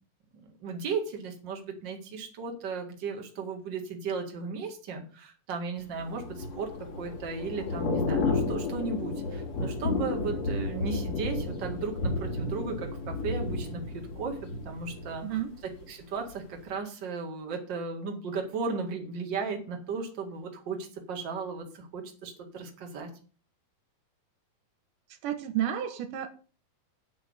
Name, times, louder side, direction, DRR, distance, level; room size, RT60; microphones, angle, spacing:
voice 1, 0.6-6.7 7.0-14.4 14.6-23.1, right 4 dB, 40° right, 3 dB, 2.4 m, -35 dB
Thunder / Rain, 5.9-15.9 16.2-16.5, left 3 dB, 55° left, 3.4 m, -32 dB
voice 2, 25.2-26.5, right 11 dB, 80° right, 8 dB, 2.7 m, -31 dB
9.4 x 5.6 x 7.9 m, 0.38 s
omnidirectional pair, 3.7 m